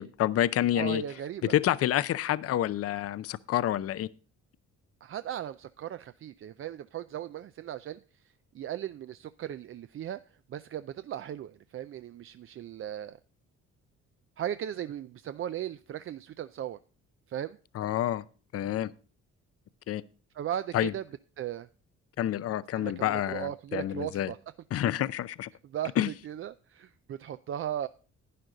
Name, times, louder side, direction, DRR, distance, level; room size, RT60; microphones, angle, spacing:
voice 1, 0.0-1.0 1.5-4.1 17.8-18.2 18.5-18.9 19.9-20.0 20.7-20.9 22.2-24.3 24.7-25.5 26.0-26.1, left 12 dB, 50° left, 17 dB, 0.5 m, -28 dB
voice 2, 0.7-1.5 5.0-10.2 10.5-13.2 14.4-16.8 17.3-17.6 20.3-21.0 21.4-21.7 22.8-24.4 25.6-27.9, right 11 dB, 45° right, 13 dB, 0.4 m, -37 dB
11.0 x 9.7 x 3.9 m, 0.39 s
cardioid pair, 90°, 30 cm